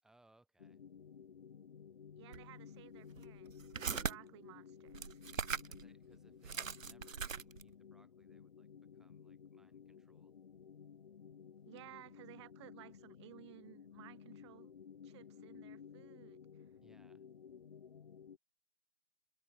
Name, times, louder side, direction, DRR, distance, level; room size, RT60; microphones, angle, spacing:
voice 1, 0.0-0.8 5.6-10.4 16.8-17.3, right 2 dB, ahead, 3.5 m, -71 dB
sound 1, 0.6-18.4, left 7 dB, 40° left, 2.7 m, -55 dB
voice 2, 2.2-3.5 3.8-5.2 11.7-14.8 15.0-16.4, right 16 dB, 20° right, 5.2 m, -57 dB
sound 2, 2.3-2.4 3.1-4.1 4.9-5.8 6.1-6.2 6.4-7.7, right 6 dB, 75° right, 1.1 m, -40 dB
figure-of-eight pair, 160°, 40 cm